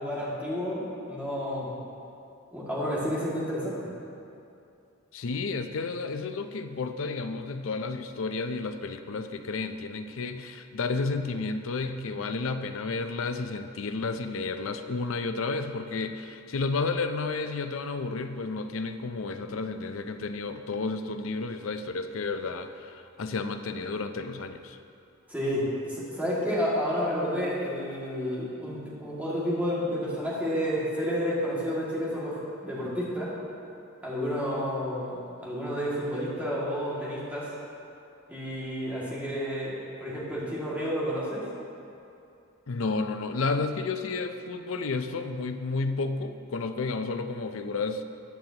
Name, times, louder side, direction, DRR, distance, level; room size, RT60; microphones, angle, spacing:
voice 1, 0.0-1.7 2.5-3.9 25.3-33.3 34.0-37.5 38.3-41.5, equal, 10° right, -7 dB, 2.1 m, -30 dB
voice 2, 5.1-24.8 42.7-48.0, left 3 dB, 75° left, 8 dB, 0.5 m, -31 dB
14.0 x 8.8 x 2.9 m, 2.7 s
head